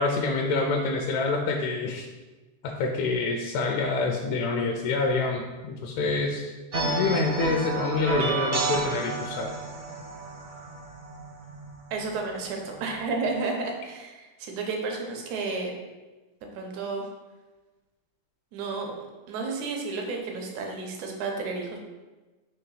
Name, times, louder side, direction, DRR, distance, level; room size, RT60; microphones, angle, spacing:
voice 1, 0.0-2.1 2.6-6.5 6.8-9.5, left 3 dB, 80° left, 1 dB, 1.7 m, -27 dB
sound 1, 6.7-12.1, right 3 dB, 60° right, 0.9 m, -30 dB
voice 2, 11.9-15.7 16.6-17.0 18.5-19.0 19.3-21.8, right 3 dB, 75° right, 1 dB, 2.3 m, -32 dB
5.7 x 3.1 x 5.6 m, 1.2 s
omnidirectional pair, 3.4 m